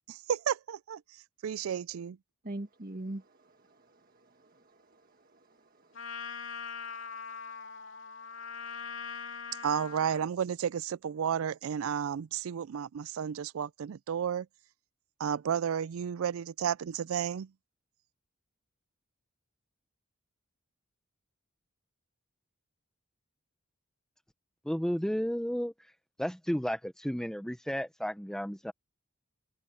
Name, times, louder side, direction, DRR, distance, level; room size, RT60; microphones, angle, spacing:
voice 1, 0.1-2.2 9.6-14.5 15.2-17.5, right 8 dB, 80° right, 0.4 m, -32 dB
voice 2, 2.4-6.0, right 1 dB, 40° right, 1.6 m, -44 dB
Trumpet, 5.9-10.3, left 6 dB, 60° left, 2.9 m, -41 dB
voice 3, 24.6-25.7 26.2-28.7, equal, 5° left, 0.8 m, -32 dB
open air
head